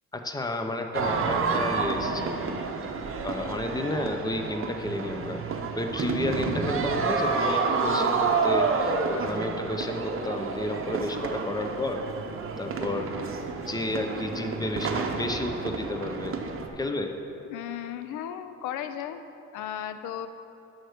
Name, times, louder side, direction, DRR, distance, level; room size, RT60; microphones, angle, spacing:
voice 1, 0.1-2.3 3.2-5.4 5.8-12.1 12.6-13.1 13.6-17.1, left 1 dB, 15° left, 5 dB, 0.7 m, -32 dB
sound 1, 0.9-16.7, right 4 dB, 45° right, 0.8 m, -29 dB
voice 2, 17.5-19.2 19.5-20.3, left 10 dB, 90° left, 10 dB, 0.5 m, -35 dB
7.9 x 6.0 x 5.0 m, 2.8 s
cardioid pair, 90°, 30 cm